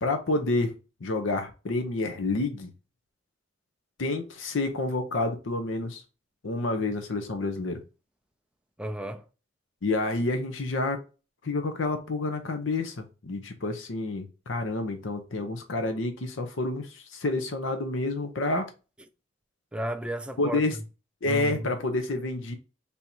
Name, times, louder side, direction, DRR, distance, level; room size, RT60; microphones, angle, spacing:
voice 1, 0.0-0.7 1.0-2.7 4.0-6.0 6.4-7.8 9.8-11.0 11.4-18.7 20.4-20.8 21.2-22.5, left 2 dB, 80° left, 0.7 m, -29 dB
voice 2, 8.8-9.2 19.7-20.8 21.2-21.7, right 1 dB, 5° right, 0.3 m, -33 dB
3.5 x 2.7 x 4.3 m
head